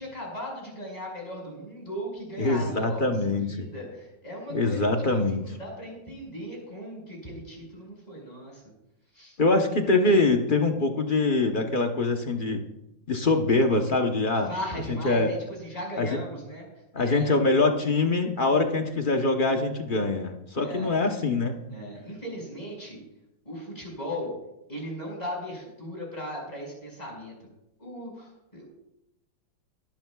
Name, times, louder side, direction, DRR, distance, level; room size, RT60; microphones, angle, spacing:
voice 1, 0.0-3.1 3.4-8.6 9.1-9.4 14.5-16.7 17.0-17.4 20.6-20.9 21.7-23.0 23.5-24.3 24.7-27.3 27.8-28.6, equal, 20° left, -2 dB, 5.4 m, -37 dB
voice 2, 2.4-3.7 4.5-5.4 9.4-12.6 13.1-14.5 14.9-15.4 16.0-16.2 16.9-21.7, left 2 dB, 35° left, 4 dB, 0.8 m, -24 dB
22.5 x 12.0 x 2.3 m, 0.88 s
omnidirectional pair, 2.0 m